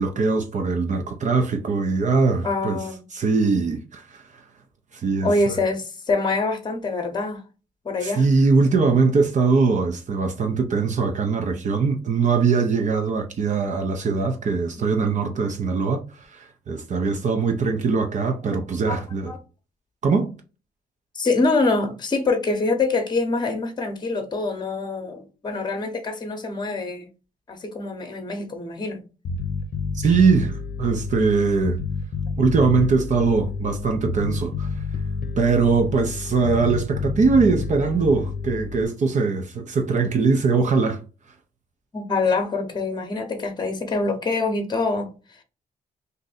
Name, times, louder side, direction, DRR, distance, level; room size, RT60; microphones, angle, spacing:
voice 1, 0.0-2.8 3.1-4.4 4.9-5.5 8.0-19.3 20.0-20.3 29.9-31.8 32.4-34.8 35.4-41.0, right 4 dB, 50° right, 0.6 m, -21 dB
voice 2, 2.4-3.0 5.2-7.4 7.8-8.2 18.9-19.4 21.1-27.1 27.5-29.0 41.9-45.1, left 3 dB, 25° left, 0.8 m, -25 dB
Bass guitar, 29.2-38.8, left 4 dB, 65° left, 0.6 m, -29 dB
2.6 x 2.6 x 3.9 m
cardioid pair, 90°, 16 cm